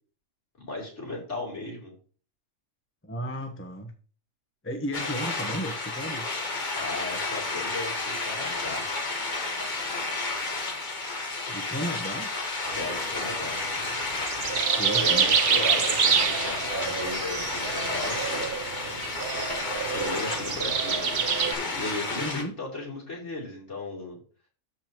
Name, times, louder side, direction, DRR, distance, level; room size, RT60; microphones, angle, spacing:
voice 1, 0.6-1.9 5.0-5.1 6.7-8.9 12.7-13.6 14.9-18.4 18.7-19.0 19.9-21.1 21.7-24.2, left 2 dB, 65° left, -3 dB, 3.8 m, -36 dB
voice 2, 3.0-3.9 4.6-6.2 11.5-12.3 14.8-15.3 22.2-22.6, equal, 10° left, 4 dB, 1.0 m, -34 dB
sound 1, 4.9-22.4, left 3 dB, 40° left, 1.5 m, -31 dB
sound 2, 12.7-21.5, right 6 dB, 50° right, 1.0 m, -27 dB
14.0 x 5.1 x 3.0 m, 0.40 s
omnidirectional pair, 1.3 m